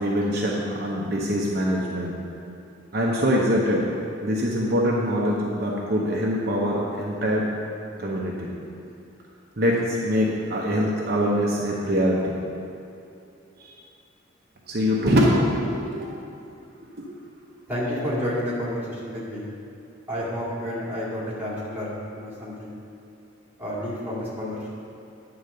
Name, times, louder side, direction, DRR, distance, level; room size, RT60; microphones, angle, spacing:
voice 1, 0.0-2.1 2.9-3.9 4.2-7.4 8.0-8.5 9.6-12.4 13.6-13.7 14.7-15.6 15.9-16.1 17.0-17.1, equal, 50° right, -4 dB, 0.8 m, -23 dB
voice 2, 17.7-19.5 20.1-22.8 23.6-24.7, equal, 10° right, -9 dB, 2.0 m, -30 dB
9.3 x 3.9 x 6.6 m, 2.7 s
head